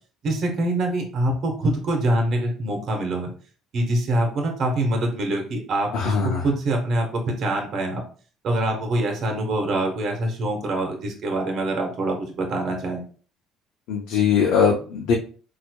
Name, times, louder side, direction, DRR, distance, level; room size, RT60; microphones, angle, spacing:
voice 1, 0.2-3.3 3.7-8.0 8.4-13.0, right 1 dB, 55° right, 2 dB, 1.0 m, -24 dB
voice 2, 5.9-6.5 13.9-15.1, left 6 dB, 80° left, -1 dB, 0.6 m, -21 dB
4.4 x 2.7 x 2.2 m, 0.40 s
cardioid pair, 110°, 0 cm